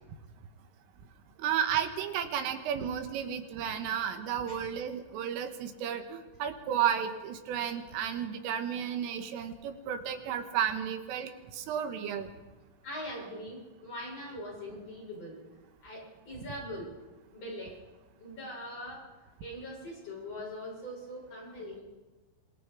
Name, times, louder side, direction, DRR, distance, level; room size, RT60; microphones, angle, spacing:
voice 1, 1.4-12.3, right 9 dB, 85° right, 6 dB, 4.0 m, -33 dB
voice 2, 12.8-15.4 15.8-16.9 17.3-17.8 18.2-19.1 19.4-21.8, left 1 dB, 30° left, -3 dB, 8.4 m, -42 dB
26.0 x 20.0 x 5.0 m, 1.2 s
omnidirectional pair, 5.7 m